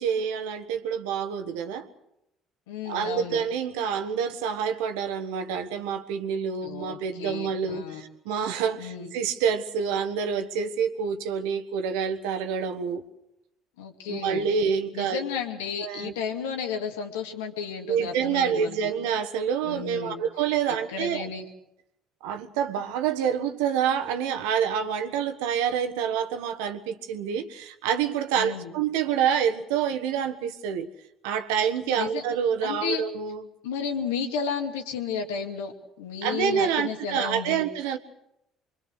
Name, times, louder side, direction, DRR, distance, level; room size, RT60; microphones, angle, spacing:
voice 1, 0.0-1.9 2.8-13.0 14.1-15.3 15.8-16.1 17.9-21.3 22.2-30.9 31.2-33.4 36.2-38.0, right 7 dB, 70° right, 1.5 m, -27 dB
voice 2, 2.7-3.4 6.6-8.1 8.8-9.1 13.8-14.5 14.9-18.9 19.6-20.2 20.7-21.5 28.4-28.7 32.0-32.2 32.6-33.1 33.6-37.6, left 6 dB, 75° left, 2.5 m, -33 dB
25.0 x 24.0 x 6.5 m
hypercardioid pair, 55°, 0 cm